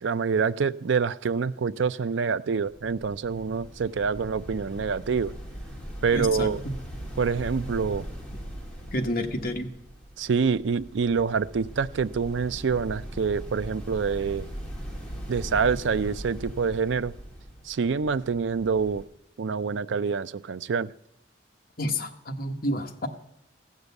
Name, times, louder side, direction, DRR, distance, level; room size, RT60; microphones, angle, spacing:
voice 1, 0.0-5.3 6.0-6.6 7.2-8.0 10.2-14.5 15.3-17.1 17.6-19.0 19.4-20.9, right 5 dB, 70° right, 15 dB, 0.4 m, -26 dB
sound 1, 2.6-19.1, equal, 5° left, 1.8 m, -40 dB
voice 2, 6.1-6.5 8.9-9.7 21.8-23.1, left 1 dB, 50° left, 4 dB, 1.1 m, -29 dB
15.0 x 6.6 x 8.2 m, 0.79 s
head